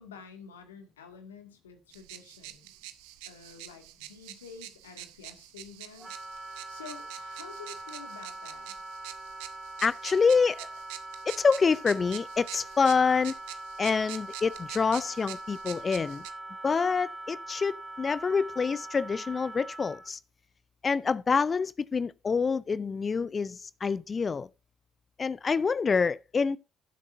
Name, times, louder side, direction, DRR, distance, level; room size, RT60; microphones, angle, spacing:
voice 1, 0.0-2.7 3.3-6.2 6.5-8.7, left 6 dB, 85° left, 2.1 m, -49 dB
sound 1, 1.9-16.3, right 15 dB, 70° right, 0.9 m, -46 dB
Wind instrument woodwind instrument, 6.0-20.1, right 2 dB, 25° right, 3.3 m, -42 dB
voice 2, 9.8-10.7 11.3-13.3 13.8-16.2 16.6-20.2 20.8-24.5 25.2-26.6, left 5 dB, 35° left, 0.4 m, -26 dB
15.5 x 8.1 x 2.6 m
hypercardioid pair, 55°, 0 cm